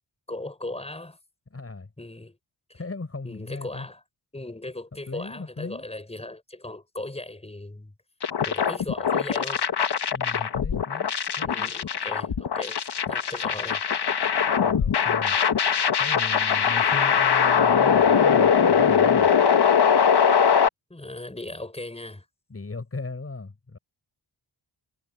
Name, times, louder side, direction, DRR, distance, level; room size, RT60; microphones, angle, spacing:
voice 1, 0.3-1.2 2.0-2.4 2.7-2.8 3.2-4.0 4.3-7.9 8.4-9.6 11.5-13.8 20.9-22.2, left 2 dB, 15° left, 6.0 m, -38 dB
voice 2, 1.5-1.9 2.7-3.9 5.1-5.9 10.1-11.7 14.6-15.4 16.0-19.3 22.5-23.8, left 3 dB, 30° left, 4.7 m, -37 dB
sound 1, 8.2-20.7, left 7 dB, 55° left, 1.4 m, -21 dB
wide cardioid pair, 160°, 47 cm